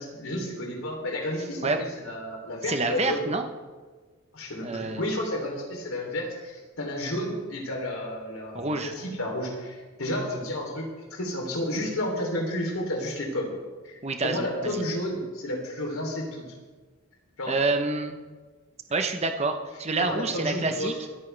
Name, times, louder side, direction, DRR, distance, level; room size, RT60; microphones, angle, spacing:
voice 1, 0.0-3.3 4.3-13.5 13.8-16.4 17.4-17.5 20.0-20.9, left 1 dB, 80° left, 1 dB, 3.4 m, -31 dB
voice 2, 2.7-3.5 4.6-5.0 8.5-8.9 14.0-14.8 17.5-18.2 18.9-20.9, right 3 dB, 30° right, 6 dB, 0.9 m, -27 dB
25.0 x 9.1 x 3.4 m, 1.4 s
head